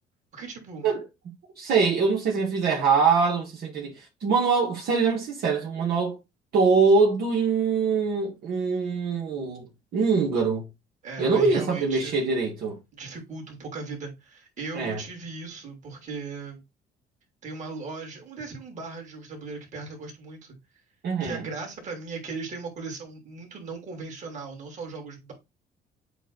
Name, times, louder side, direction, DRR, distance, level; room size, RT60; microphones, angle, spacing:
voice 1, 0.3-0.9 11.0-12.2 12.9-16.6 17.4-20.6 21.2-25.3, right 4 dB, 45° right, 3.2 m, -38 dB
voice 2, 1.6-6.2 6.5-9.7 9.9-10.7 11.2-12.8 14.7-15.0 21.0-21.4, right 4 dB, 70° right, 2.1 m, -23 dB
8.1 x 2.9 x 4.0 m
cardioid pair, 110°, 17 cm